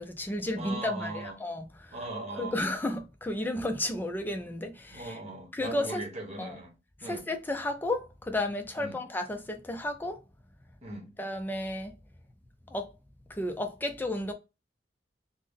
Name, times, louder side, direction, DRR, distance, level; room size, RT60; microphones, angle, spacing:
voice 1, 0.0-2.0 2.4-5.2 5.5-6.0 6.4-6.6 7.0-10.2 11.2-11.9 12.7-12.9 13.3-14.3, left 1 dB, 10° left, 0.3 m, -33 dB
voice 2, 0.6-1.4 1.9-2.6 4.9-6.7 7.0-7.2 8.8-9.0 10.8-11.1, right 2 dB, 40° right, 1.0 m, -39 dB
3.5 x 2.0 x 3.5 m
head